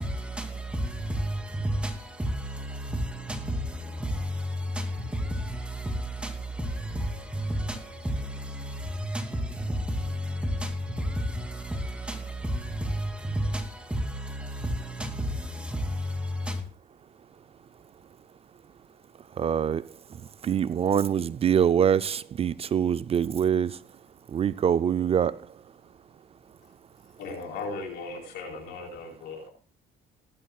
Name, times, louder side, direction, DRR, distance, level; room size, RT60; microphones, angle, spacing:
voice 1, 0.0-16.6, equal, 5° right, 2.6 m, -31 dB
voice 2, 19.4-19.8 20.4-23.8 24.3-25.4, right 8 dB, 35° right, 0.4 m, -24 dB
voice 3, 27.2-29.5, left 3 dB, 85° left, 4.5 m, -37 dB
18.5 x 12.0 x 2.3 m
cardioid pair, 110°, 17 cm